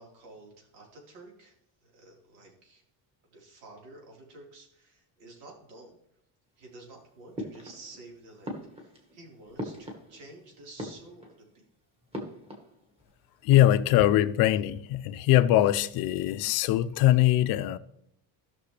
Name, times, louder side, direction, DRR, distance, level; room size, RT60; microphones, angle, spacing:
voice 1, 0.0-1.6 1.8-2.8 3.3-6.0 6.6-11.7, right 2 dB, 80° right, 4.2 m, -51 dB
sound 1, 7.3-8.1 8.4-10.4 10.7-11.5 12.1-13.1 13.4-13.9, equal, 15° right, 1.6 m, -41 dB
voice 2, 13.4-17.8, left 13 dB, 60° left, 0.6 m, -22 dB
16.0 x 6.2 x 3.3 m
cardioid pair, 180°, 41 cm